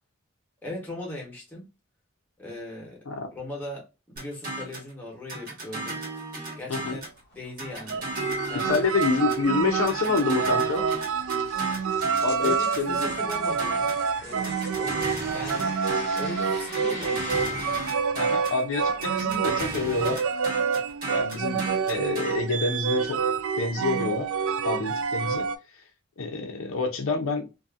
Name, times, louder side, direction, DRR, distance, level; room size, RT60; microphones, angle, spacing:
voice 1, 0.6-1.7 2.4-3.0 3.3-6.0 6.6-7.1 7.3-8.1 8.5-9.3 9.5-9.7 12.2-15.8 16.2-17.5, left 1 dB, 10° left, 1.1 m, -39 dB
sound 1, 4.2-4.9 5.3-7.2 7.6-9.5 9.9-14.0 14.4-16.3 16.7-18.6 19.0-22.3, right 1 dB, 40° right, 1.3 m, -35 dB
sound 2, 7.0-17.5, left 2 dB, 30° left, 1.3 m, -44 dB
sound 3, 7.9-25.6, right 6 dB, 70° right, 0.4 m, -27 dB
voice 2, 8.6-10.9 12.2-13.1 18.1-20.2 21.1-23.3 23.6-24.3 24.6-25.5 26.2-27.5, left 3 dB, 65° left, 0.5 m, -27 dB
2.7 x 2.5 x 2.4 m
head